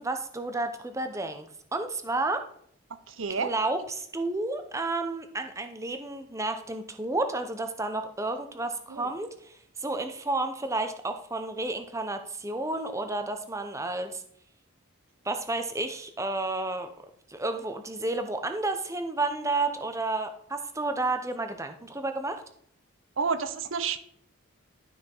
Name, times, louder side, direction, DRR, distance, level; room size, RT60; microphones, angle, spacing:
voice 1, 0.0-2.4 3.4-14.2 15.2-16.9 17.3-22.4, right 2 dB, 15° right, 7 dB, 0.8 m, -31 dB
voice 2, 3.1-3.5 8.9-9.1 23.2-24.0, right 5 dB, 65° right, 12 dB, 0.8 m, -30 dB
12.0 x 5.9 x 4.5 m, 0.65 s
head